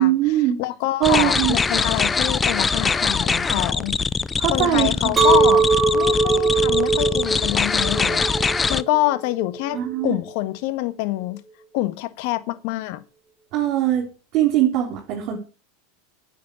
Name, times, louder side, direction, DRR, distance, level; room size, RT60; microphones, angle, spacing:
voice 1, 0.0-0.6 1.0-1.6 4.4-5.2 9.7-10.2 13.5-15.4, right 12 dB, 50° right, 4.1 m, -21 dB
voice 2, 0.6-4.0 4.5-5.6 5.9-11.4 11.7-13.0, left 16 dB, 60° left, 1.5 m, -26 dB
sound 1, 1.0-8.8, left 4 dB, 15° left, 0.5 m, -23 dB
Chink clink, 5.2-10.3, right 5 dB, 20° right, 3.8 m, -21 dB
10.0 x 7.5 x 8.7 m
supercardioid pair, 120°, 0 cm